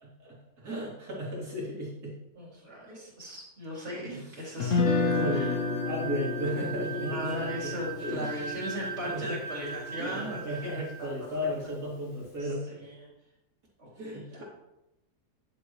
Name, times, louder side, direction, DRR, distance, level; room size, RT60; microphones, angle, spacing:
voice 1, 0.0-2.2 3.9-4.2 5.0-7.7 8.0-8.4 9.0-9.2 10.0-12.9 14.0-14.4, equal, 80° right, -6 dB, 3.4 m, -35 dB
voice 2, 2.4-4.9 5.3-5.5 7.0-11.1 12.4-13.1 13.8-14.4, equal, 45° right, -5 dB, 3.6 m, -38 dB
Guitar, 4.6-10.7, left 4 dB, 60° left, 1.2 m, -31 dB
sound 1, 5.0-11.1, right 6 dB, 5° left, 2.5 m, -40 dB
10.5 x 7.8 x 3.1 m, 0.90 s
omnidirectional pair, 1.7 m